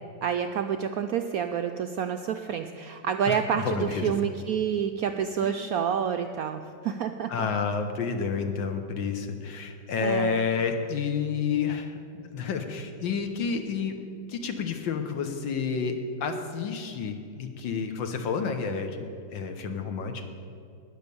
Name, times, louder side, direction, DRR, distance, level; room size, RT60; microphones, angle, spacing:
voice 1, 0.2-7.5 10.0-10.5, right 8 dB, 75° right, 6 dB, 0.8 m, -28 dB
voice 2, 3.3-4.1 5.4-5.5 7.3-14.0 14.3-20.2, left 5 dB, 80° left, 6 dB, 1.8 m, -30 dB
19.0 x 6.7 x 6.9 m, 2.4 s
omnidirectional pair, 2.0 m